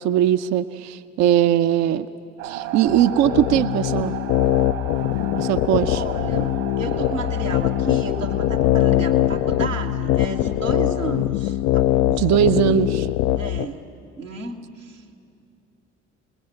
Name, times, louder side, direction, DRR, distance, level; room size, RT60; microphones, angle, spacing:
voice 1, 0.0-2.1 2.4-4.1 5.4-6.0 12.2-13.1, right 11 dB, 45° right, 11 dB, 0.7 m, -20 dB
sound 1, 2.4-11.4, right 10 dB, 70° right, 2.0 m, -35 dB
sound 2, 2.9-13.7, left 14 dB, 50° left, 0.5 m, -22 dB
voice 2, 5.9-12.2 13.4-13.9 14.2-15.0, right 4 dB, 90° right, -1 dB, 1.7 m, -32 dB
28.5 x 20.5 x 7.9 m, 2.7 s
figure-of-eight pair, 55°, 37 cm